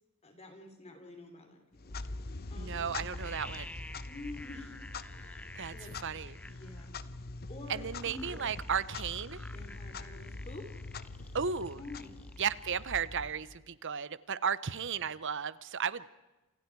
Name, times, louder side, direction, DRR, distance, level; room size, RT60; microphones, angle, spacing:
voice 1, 0.2-2.0 2.5-3.0 4.1-4.8 5.1-6.0 6.4-7.0 7.5-8.5 9.5-10.7 11.8-12.2, left 2 dB, 30° left, 5 dB, 3.3 m, -48 dB
Clock, 1.7-13.7, left 3 dB, 45° left, 0.9 m, -44 dB
voice 2, 2.6-3.7 5.6-5.7 6.0-6.4 7.7-9.4 11.3-11.8 12.4-16.1, right 7 dB, 55° right, 17 dB, 0.9 m, -34 dB
sound 1, 2.7-2.8 3.0-6.9 7.8-13.1 13.4-13.5, left 1 dB, 5° left, 0.7 m, -51 dB
28.5 x 28.5 x 4.7 m, 1.1 s
head